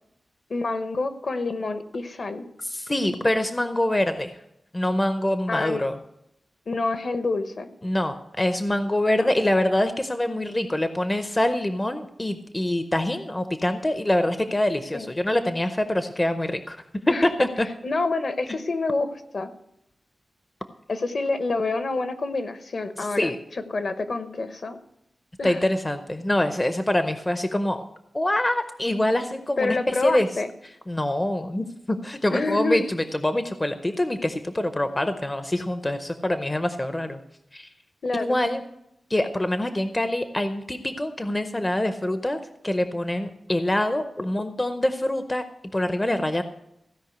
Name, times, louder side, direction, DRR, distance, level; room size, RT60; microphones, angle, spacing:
voice 1, 0.5-2.5 5.5-5.8 6.7-7.7 9.2-9.3 14.9-15.1 17.1-17.3 17.8-19.5 20.9-24.8 25.4-25.6 29.6-30.5 32.3-32.8 38.0-38.4, left 3 dB, 50° left, 9 dB, 1.1 m, -27 dB
voice 2, 2.6-4.4 4.7-6.0 7.8-16.8 17.2-17.7 23.2-23.4 25.4-27.9 28.1-30.3 30.9-37.2 37.5-37.7 38.1-38.6 39.1-45.4 45.7-46.4, left 1 dB, 15° left, 9 dB, 0.6 m, -25 dB
16.0 x 5.4 x 7.9 m, 0.80 s
wide cardioid pair, 165°, 0 cm